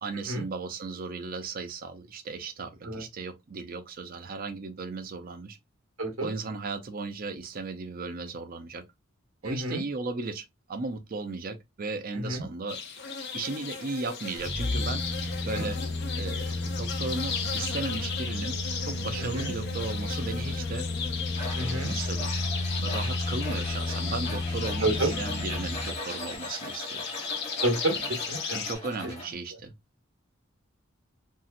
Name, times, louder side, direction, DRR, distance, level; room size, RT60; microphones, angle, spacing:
voice 1, 0.0-5.6 6.2-8.8 9.4-12.8 13.3-15.8 16.2-20.9 21.6-22.3 22.8-27.1 28.5-29.7, right 3 dB, 45° right, 0.5 m, -36 dB
voice 2, 6.0-6.3 9.4-9.8 12.1-12.5 15.5-15.7 19.2-19.5 21.5-22.0 24.8-25.2 27.6-28.6, right 1 dB, 70° right, 1.0 m, -30 dB
sound 1, 12.7-28.7, left 6 dB, 50° left, 0.6 m, -36 dB
sound 2, 14.4-26.0 26.3-26.4, left 2 dB, 75° left, 0.9 m, -32 dB
Tools, 21.3-29.3, left 1 dB, 30° left, 1.1 m, -40 dB
3.0 x 2.8 x 2.5 m
head